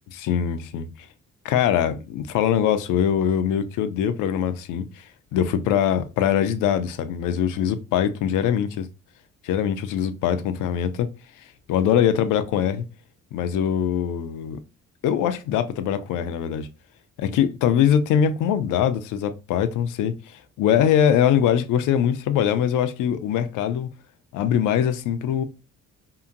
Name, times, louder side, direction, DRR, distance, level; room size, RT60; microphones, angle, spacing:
voice 1, 0.1-0.9 1.4-5.0 5.3-8.9 9.4-11.1 11.7-12.8 13.3-14.6 15.0-16.7 17.2-20.2 20.6-23.9 24.3-25.4, left 9 dB, 85° left, 0.5 m, -22 dB
2.8 x 2.5 x 2.5 m
cardioid pair, 90°, 30 cm